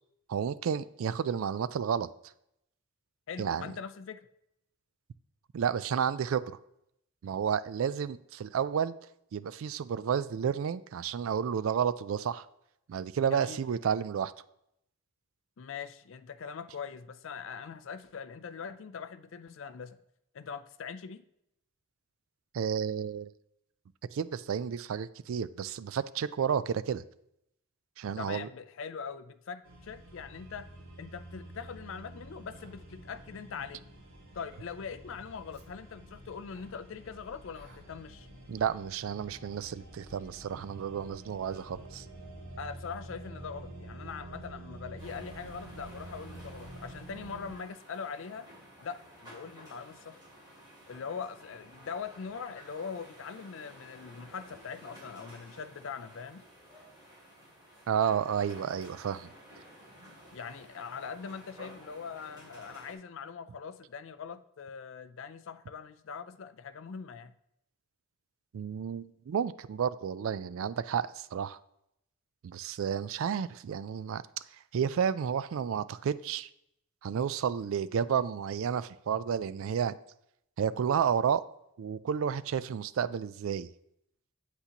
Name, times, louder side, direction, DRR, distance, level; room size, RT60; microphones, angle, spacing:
voice 1, 0.3-2.1 3.4-3.7 5.5-6.4 7.2-8.9 9.3-12.5 12.9-14.3 22.5-23.3 24.1-27.0 28.0-28.5 38.5-42.0 57.9-59.3 68.5-71.6 72.4-74.2 74.7-76.5 77.0-79.9 80.6-81.4 81.8-83.7, right 7 dB, 65° right, 16 dB, 0.3 m, -31 dB
voice 2, 3.3-4.3 13.3-13.6 15.6-20.0 20.3-21.2 28.2-30.7 31.0-33.8 34.3-38.3 42.6-48.5 48.8-50.2 50.9-56.4 60.3-67.3, left 6 dB, 60° left, 12 dB, 0.4 m, -42 dB
sound 1, 29.6-47.6, right 1 dB, 90° right, 2.2 m, -48 dB
Human voice, 32.5-32.7 33.5-33.8 34.5-34.7 35.5-35.7 36.5-36.7 37.5-37.8 38.5-38.7 39.5-39.7 40.5-40.7 41.5-41.7, right 1 dB, 45° right, 1.0 m, -55 dB
sound 2, 45.0-62.9, equal, 20° right, 2.9 m, -53 dB
8.1 x 8.1 x 2.9 m, 0.78 s
head